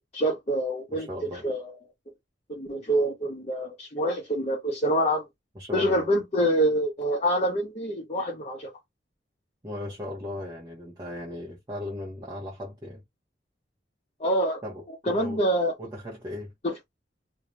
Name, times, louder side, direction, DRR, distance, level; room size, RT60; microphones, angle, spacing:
voice 1, 0.1-1.1 1.4-1.7 2.5-5.2 5.7-8.7 14.2-14.6 15.0-15.7 16.6-16.7, right 1 dB, 35° left, 0.8 m, -26 dB
voice 2, 0.9-1.5 5.5-6.2 9.6-13.0 14.6-15.4 15.8-16.5, left 1 dB, 25° right, 0.9 m, -37 dB
2.6 x 2.3 x 3.2 m
head